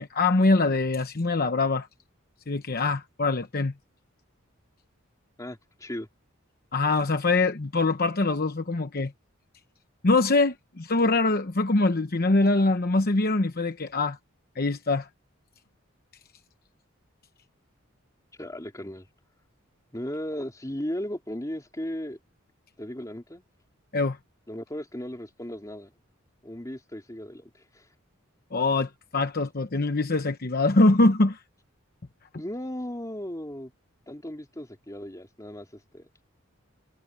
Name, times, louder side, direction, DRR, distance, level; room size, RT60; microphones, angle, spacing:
voice 1, 0.0-1.9 2.5-3.7 6.7-9.1 10.0-14.2 14.5-15.1 23.9-24.2 28.5-31.4, left 2 dB, 45° left, 1.0 m, -23 dB
voice 2, 5.4-6.1 18.4-19.1 19.9-22.2 22.8-23.4 24.5-25.9 26.4-27.8 32.4-33.7 34.1-36.1, equal, 15° left, 2.6 m, -36 dB
head